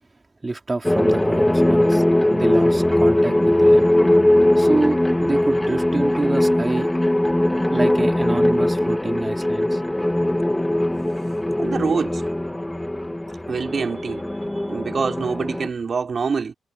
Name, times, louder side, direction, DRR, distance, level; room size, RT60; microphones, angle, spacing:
voice 1, 0.4-2.0 2.3-3.8 4.6-6.9 7.7-9.8, right 2 dB, 30° right, 4.3 m, -26 dB
sound 1, 0.8-15.7, left 1 dB, 10° left, 3.2 m, -20 dB
voice 2, 11.6-12.2 13.5-14.2 14.6-16.5, right 5 dB, 50° right, 5.1 m, -25 dB
supercardioid pair, 50°, 0 cm